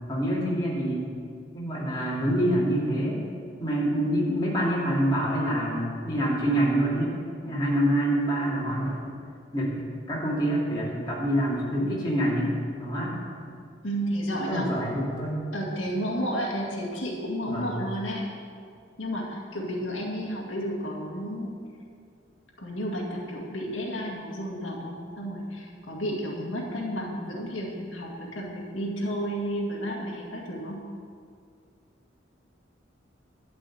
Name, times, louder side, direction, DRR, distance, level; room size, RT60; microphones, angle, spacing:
voice 1, 0.1-1.1 1.5-3.2 3.6-7.1 7.4-9.0 9.5-12.5 12.8-13.2 14.3-15.4 17.5-17.7, right 1 dB, 20° left, -6 dB, 2.6 m, -26 dB
voice 2, 13.8-14.7 15.5-18.2 19.0-21.6 22.6-30.8, equal, 85° left, -2 dB, 2.1 m, -32 dB
12.0 x 5.5 x 8.5 m, 2.2 s
head